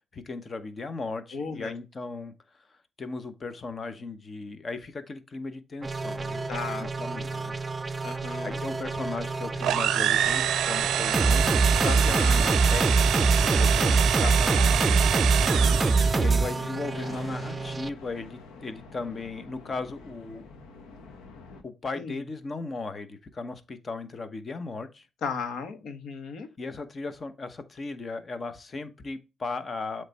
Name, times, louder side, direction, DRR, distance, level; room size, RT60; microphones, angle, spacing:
voice 1, 0.1-2.3 3.0-6.4 6.8-7.6 8.4-11.6 12.0-14.0 15.2-15.4 16.2-20.4 21.6-25.1 26.6-30.0, left 3 dB, 35° left, 1.0 m, -37 dB
voice 2, 1.3-1.7 6.5-7.3 8.0-8.6 11.8-12.5 14.2-15.8 21.9-22.2 25.2-26.5, left 5 dB, 70° left, 1.4 m, -36 dB
sound 1, 5.8-17.9, right 3 dB, 25° right, 0.6 m, -25 dB
sound 2, 8.9-21.6, left 4 dB, 85° left, 1.2 m, -46 dB
sound 3, 9.6-16.3, right 11 dB, 80° right, 0.5 m, -27 dB
7.8 x 3.3 x 4.2 m
cardioid pair, 90°, 0 cm